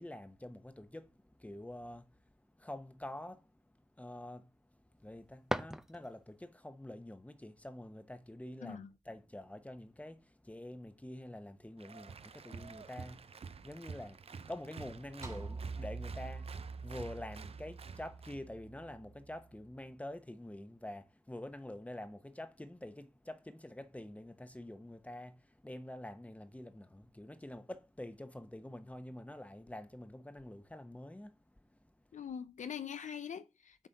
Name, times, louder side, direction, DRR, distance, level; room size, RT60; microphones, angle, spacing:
voice 1, 0.0-2.2 2.6-31.8, left 1 dB, 10° left, 1.0 m, -47 dB
sound 1, 5.0-6.5, equal, 5° right, 0.6 m, -40 dB
voice 2, 8.6-8.9 32.1-33.9, left 8 dB, 75° left, 0.5 m, -43 dB
Applause, 11.8-18.5, right 5 dB, 50° right, 0.5 m, -50 dB
sound 2, 15.2-19.6, right 4 dB, 25° right, 1.5 m, -46 dB
7.4 x 4.2 x 4.0 m
cardioid pair, 45°, 13 cm